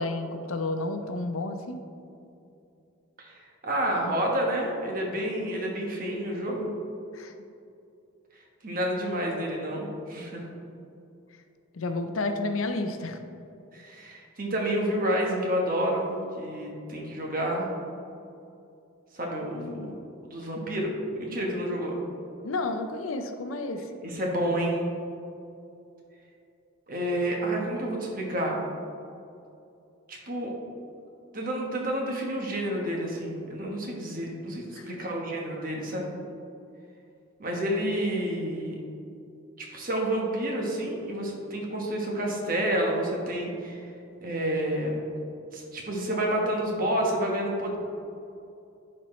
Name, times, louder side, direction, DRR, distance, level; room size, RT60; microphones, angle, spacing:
voice 1, 0.0-1.8 7.1-7.3 11.7-13.3 19.5-20.0 22.4-23.9 34.7-35.0, left 2 dB, 80° left, 7 dB, 0.6 m, -31 dB
voice 2, 3.2-6.7 8.6-10.5 13.7-17.7 19.1-19.9 20.3-22.0 24.1-24.9 26.9-28.6 30.1-30.5 31.3-36.1 37.4-38.8 39.6-43.8 44.2-45.0 45.5-47.8, right 1 dB, 45° right, -1 dB, 1.2 m, -29 dB
11.0 x 4.3 x 3.2 m, 2.7 s
head